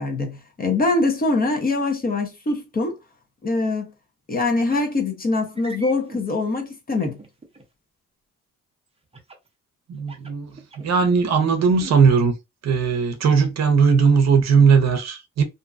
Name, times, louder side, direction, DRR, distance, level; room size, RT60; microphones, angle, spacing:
voice 1, 0.0-3.0 3.4-3.9 4.3-7.2, left 2 dB, 30° left, 0.8 m, -23 dB
sound 1, 4.7-4.9 5.5-6.2 7.0-7.6 9.1-9.5 10.0-11.1 11.5-11.9, right 2 dB, 20° right, 0.7 m, -42 dB
voice 2, 9.9-10.5 10.8-12.3 12.6-15.4, right 5 dB, 60° right, 0.7 m, -18 dB
2.6 x 2.2 x 2.4 m
cardioid pair, 90°, 30 cm